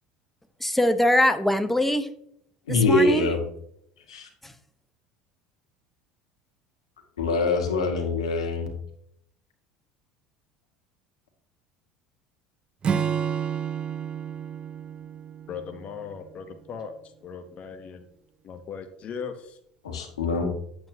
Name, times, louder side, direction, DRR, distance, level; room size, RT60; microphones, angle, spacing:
voice 1, 0.6-2.1 2.7-3.3 4.4-4.5, left 1 dB, 5° left, 1.0 m, -22 dB
voice 2, 2.7-3.4 4.1-4.3 7.2-8.7 19.8-20.5, left 3 dB, 85° left, 1.9 m, -24 dB
Acoustic guitar / Strum, 12.8-16.3, right 8 dB, 35° right, 0.5 m, -30 dB
voice 3, 15.5-18.1 18.4-19.6, left 6 dB, 45° left, 0.9 m, -38 dB
9.0 x 8.0 x 2.8 m
hypercardioid pair, 75°, 3 cm